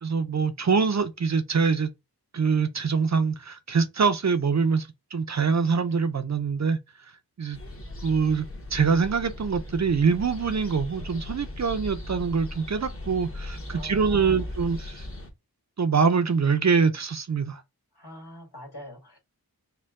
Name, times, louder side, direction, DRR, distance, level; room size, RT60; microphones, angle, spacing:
voice 1, 0.0-1.9 2.3-6.8 7.4-7.6 8.0-8.5 8.7-15.1 15.8-17.6, right 5 dB, 45° right, 0.5 m, -24 dB
sound 1, 7.5-15.3, left 1 dB, 35° left, 1.1 m, -38 dB
voice 2, 13.7-14.5 18.0-19.2, left 1 dB, 75° left, 1.8 m, -43 dB
4.4 x 2.2 x 3.5 m
wide cardioid pair, 60°, 39 cm